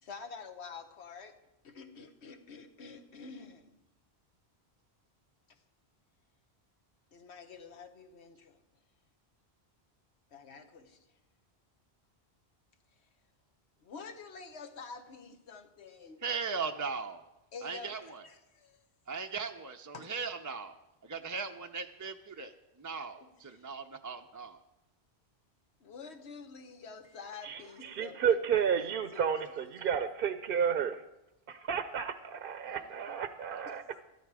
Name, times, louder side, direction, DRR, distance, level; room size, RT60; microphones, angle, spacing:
voice 1, 0.0-3.8 5.5-5.6 7.1-8.6 10.3-11.1 13.8-16.2 17.5-18.8 19.9-20.1 23.2-23.7 25.8-30.1 33.7-34.0, left 5 dB, 85° left, 7 dB, 1.3 m, -49 dB
voice 2, 16.2-17.2 17.6-18.2 19.1-20.7 21.0-24.6 32.6-32.9 33.5-33.6, right 5 dB, 25° right, 5 dB, 0.4 m, -38 dB
voice 3, 27.4-31.0 31.5-33.8, right 7 dB, 65° right, 10 dB, 0.8 m, -32 dB
13.0 x 12.5 x 4.8 m, 0.93 s
omnidirectional pair, 1.1 m